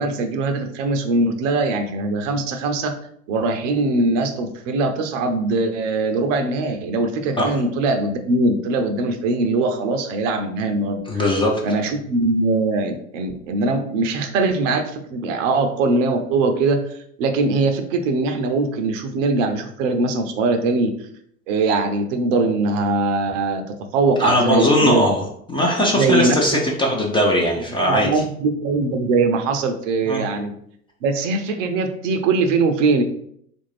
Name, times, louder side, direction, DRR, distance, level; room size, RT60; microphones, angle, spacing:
voice 1, 0.0-2.9 3.3-11.0 11.6-16.8 17.2-20.9 21.5-23.6 23.9-25.0 25.9-26.6 27.9-30.5 31.0-33.0, right 3 dB, 55° right, 6 dB, 0.6 m, -21 dB
voice 2, 11.1-11.6 24.2-28.1 30.1-30.2, left 1 dB, 10° left, -2 dB, 0.5 m, -19 dB
3.6 x 2.5 x 3.2 m, 0.67 s
hypercardioid pair, 95°, 45 cm